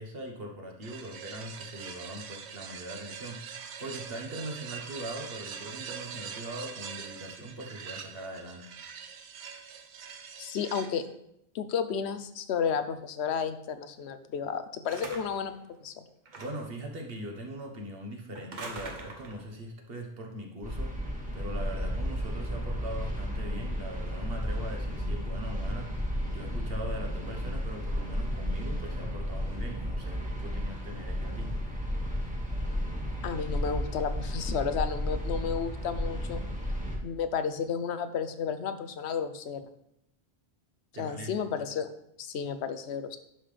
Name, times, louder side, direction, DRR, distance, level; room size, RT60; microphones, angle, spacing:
voice 1, 0.0-8.6 16.4-25.9 26.3-31.5 40.9-41.4, right 1 dB, 65° right, 2 dB, 1.4 m, -41 dB
sound 1, 0.8-11.1, right 7 dB, 90° right, 1.0 m, -43 dB
voice 2, 10.4-11.0 11.5-15.5 15.8-16.0 33.2-36.4 37.0-39.6 41.0-41.9 42.2-43.2, left 7 dB, 80° left, 10 dB, 0.9 m, -32 dB
sound 2, 14.9-15.5 16.3-16.8 18.3-19.5, right 3 dB, 45° right, 1.0 m, -43 dB
sound 3, 20.6-37.0, equal, 5° right, 1.4 m, -33 dB
11.0 x 5.6 x 3.3 m, 0.76 s
omnidirectional pair, 1.1 m